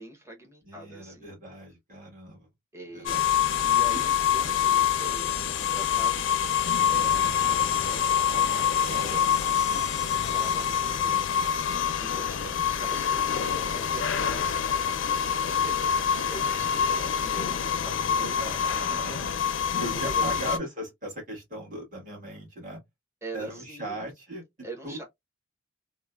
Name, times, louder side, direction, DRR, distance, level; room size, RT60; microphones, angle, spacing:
voice 1, 0.0-1.3 2.7-3.2 3.6-9.4 9.7-14.4 14.7-18.6 19.0-19.2 19.9-20.5 23.2-24.0 24.6-25.0, right 2 dB, 15° right, 0.7 m, -44 dB
voice 2, 0.6-2.5 2.9-3.3 4.4-4.6 12.4-12.6 16.4-16.7 17.0-17.1 18.2-19.3 19.8-22.8 23.3-24.4 24.8-25.0, right 1 dB, 45° right, 1.5 m, -39 dB
sound 1, 3.1-20.6, left 8 dB, 80° left, 0.4 m, -26 dB
3.0 x 2.0 x 2.2 m
head